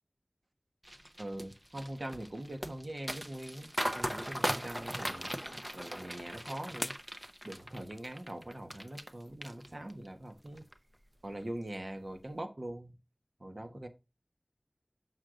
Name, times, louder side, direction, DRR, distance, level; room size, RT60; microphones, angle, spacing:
sound 1, 0.9-9.1 9.4-10.1 10.5-10.7, equal, 20° right, 0.8 m, -39 dB
voice 1, 1.2-3.7 3.9-5.4 5.7-7.0 7.4-10.6 11.2-12.9 13.4-13.9, right 1 dB, 50° right, 1.3 m, -42 dB
sound 2, 3.9-9.0, left 1 dB, 35° left, 0.3 m, -49 dB
6.4 x 6.4 x 3.8 m
wide cardioid pair, 45°, 0 cm